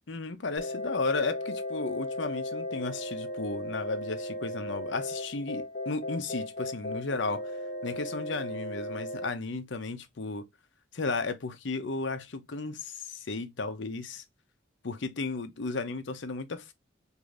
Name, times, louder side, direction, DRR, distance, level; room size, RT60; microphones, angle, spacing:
voice 1, 0.1-7.5 7.8-10.5 10.9-14.2 14.8-16.7, left 3 dB, 80° left, 0.7 m, -34 dB
sound 1, 0.6-9.3, left 1 dB, 40° left, 0.9 m, -36 dB
4.9 x 2.7 x 2.5 m
head